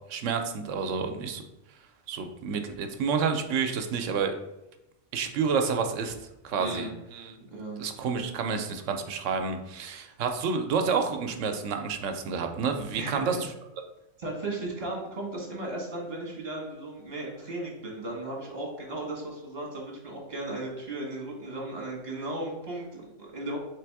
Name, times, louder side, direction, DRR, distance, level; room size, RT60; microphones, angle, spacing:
voice 1, 0.1-1.4 2.1-4.3 5.1-6.1 6.4-7.4 7.8-13.4, right 5 dB, 90° right, 6 dB, 1.0 m, -29 dB
voice 2, 6.6-7.0 7.4-7.8 13.0-13.5 14.2-23.6, right 2 dB, 35° right, -2 dB, 1.4 m, -36 dB
3.4 x 3.4 x 4.6 m, 0.91 s
omnidirectional pair, 1.3 m